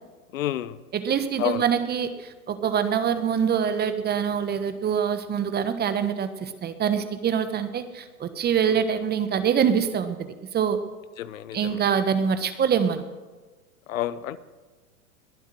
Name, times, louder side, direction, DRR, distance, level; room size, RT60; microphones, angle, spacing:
voice 1, 0.3-0.8 1.4-1.6 11.2-11.6 13.9-14.4, left 12 dB, 65° left, 17 dB, 0.9 m, -28 dB
voice 2, 0.9-10.2 10.5-10.8 11.5-13.0, right 7 dB, 20° right, 11 dB, 1.3 m, -24 dB
21.0 x 8.0 x 7.8 m, 1.3 s
hypercardioid pair, 105°, 43 cm